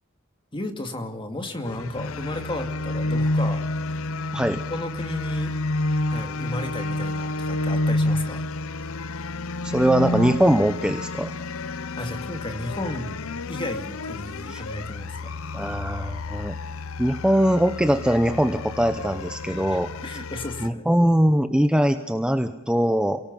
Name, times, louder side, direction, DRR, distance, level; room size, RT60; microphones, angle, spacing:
voice 1, 0.5-3.6 4.5-5.5 6.1-8.4 12.0-13.2 13.5-15.3 19.5-20.9, left 1 dB, 25° left, 5 dB, 2.3 m, -33 dB
sound 1, 1.6-20.7, left 2 dB, 70° left, 0.7 m, -29 dB
voice 2, 9.6-11.3 14.5-14.6 15.5-16.5 17.0-19.9 20.6-23.2, equal, 5° right, 8 dB, 0.8 m, -21 dB
29.0 x 18.0 x 5.4 m, 0.87 s
head